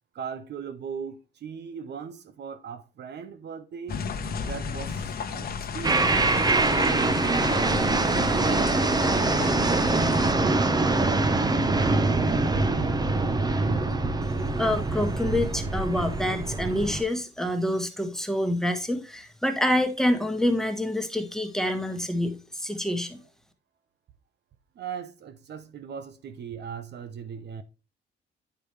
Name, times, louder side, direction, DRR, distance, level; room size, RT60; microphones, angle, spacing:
voice 1, 0.1-4.0 4.4-6.2 13.0-13.1 24.8-27.6, right 7 dB, 60° right, 0.7 m, -38 dB
sound 1, 3.9-10.3, left 5 dB, 50° left, 1.1 m, -33 dB
sound 2, 5.8-17.0, right 3 dB, 20° right, 0.8 m, -24 dB
voice 2, 8.1-9.1 14.6-23.2, left 1 dB, ahead, 1.2 m, -27 dB
8.9 x 5.0 x 3.2 m
cardioid pair, 90°, 20 cm